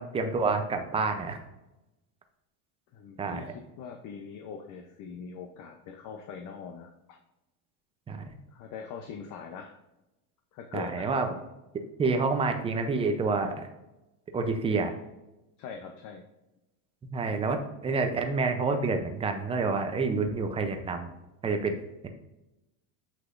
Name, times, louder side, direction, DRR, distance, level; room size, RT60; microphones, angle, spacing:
voice 1, 0.0-1.4 3.2-3.4 8.1-8.2 10.7-11.3 12.0-13.7 14.3-14.9 17.1-21.1 21.4-21.7, right 4 dB, 15° right, 6 dB, 0.4 m, -28 dB
voice 2, 2.9-7.2 8.5-9.8 10.5-11.1 15.6-16.2, left 6 dB, 40° left, 5 dB, 0.6 m, -42 dB
8.2 x 6.1 x 2.5 m, 0.97 s
supercardioid pair, 140°, 48 cm